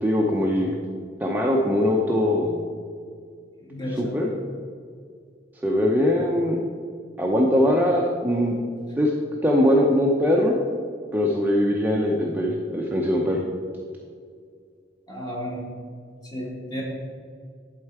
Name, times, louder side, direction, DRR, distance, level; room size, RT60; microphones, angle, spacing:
voice 1, 0.0-0.7 1.2-2.6 4.0-4.3 5.6-6.6 7.2-8.5 9.0-9.1 9.4-10.5 11.1-13.4, left 1 dB, 10° right, -1 dB, 0.6 m, -21 dB
voice 2, 3.6-4.1 15.1-15.7 16.3-16.8, equal, 20° left, -4 dB, 2.0 m, -32 dB
11.0 x 4.5 x 4.7 m, 2.1 s
head